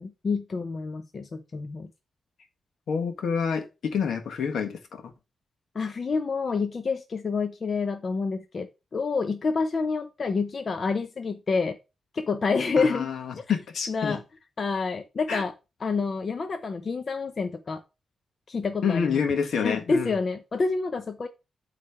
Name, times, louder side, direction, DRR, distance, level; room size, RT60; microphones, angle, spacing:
voice 1, 0.0-1.9 5.7-11.8 12.1-13.1 13.9-14.2 14.6-15.5 15.8-17.8 18.5-19.2 19.6-21.3, left 4 dB, 35° left, 0.7 m, -28 dB
voice 2, 2.9-5.1 12.8-14.2 15.3-15.4 18.8-20.2, left 6 dB, 70° left, 1.5 m, -28 dB
8.2 x 3.3 x 5.7 m
wide cardioid pair, 140°, 0 cm